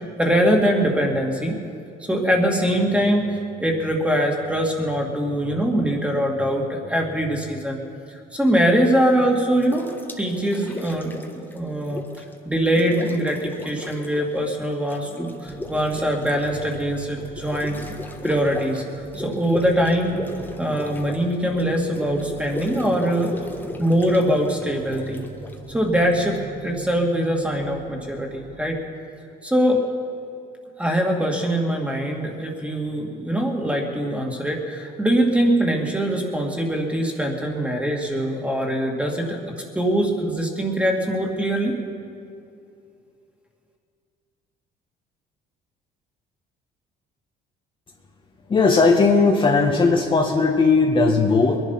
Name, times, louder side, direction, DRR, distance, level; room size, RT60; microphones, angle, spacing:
voice 1, 0.2-1.6 2.1-7.8 8.1-9.9 10.2-12.0 12.5-17.8 18.2-18.8 19.1-20.2 20.6-23.3 23.8-25.2 25.7-28.8 29.4-29.8 30.8-39.4 39.7-41.8, equal, 5° right, 1 dB, 2.3 m, -22 dB
sound 1, 8.8-9.2 9.6-12.3 12.6-14.4 14.6-26.1, left 1 dB, 10° left, 1.4 m, -36 dB
sound 2, 15.4-28.8, right 5 dB, 85° right, 1.6 m, -40 dB
voice 2, 48.5-51.6, left 4 dB, 30° left, 1 dB, 1.4 m, -17 dB
22.0 x 11.0 x 5.7 m, 2.5 s
cardioid pair, 110°, 17 cm